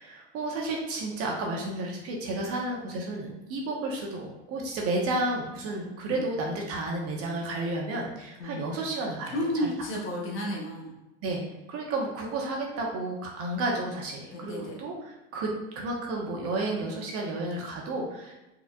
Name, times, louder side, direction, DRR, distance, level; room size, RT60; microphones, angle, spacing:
voice 1, 0.0-9.7 11.2-11.4 11.7-18.4, right 2 dB, 45° right, -1 dB, 1.0 m, -32 dB
voice 2, 8.4-8.7 9.3-10.9 14.3-14.8, equal, 40° left, -2 dB, 1.1 m, -32 dB
4.2 x 3.3 x 2.4 m, 0.98 s
hypercardioid pair, 110°, 33 cm